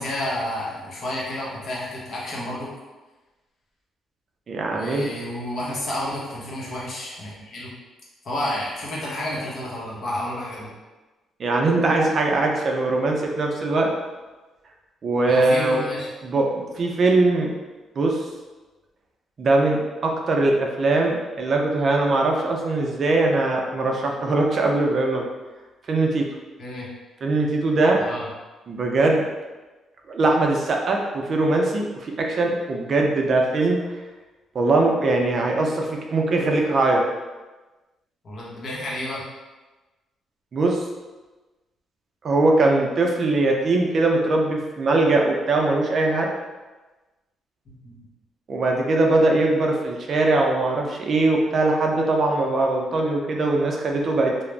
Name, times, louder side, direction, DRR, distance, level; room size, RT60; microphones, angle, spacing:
voice 1, 0.0-2.7 4.7-7.7 8.2-10.7 15.2-16.1 26.6-26.9 28.0-28.3 38.2-39.2 47.7-48.0, left 1 dB, 55° left, -5 dB, 0.9 m, -30 dB
voice 2, 4.5-5.1 11.4-13.9 15.0-15.8 16.2-17.5 18.0-18.2 19.4-25.3 25.9-26.2 27.2-28.0 28.7-29.2 30.1-33.8 34.5-37.0 40.5-40.8 42.2-46.3 48.5-54.3, right 2 dB, 50° right, 1 dB, 0.4 m, -21 dB
2.4 x 2.0 x 3.2 m, 1.2 s
cardioid pair, 90°, 0 cm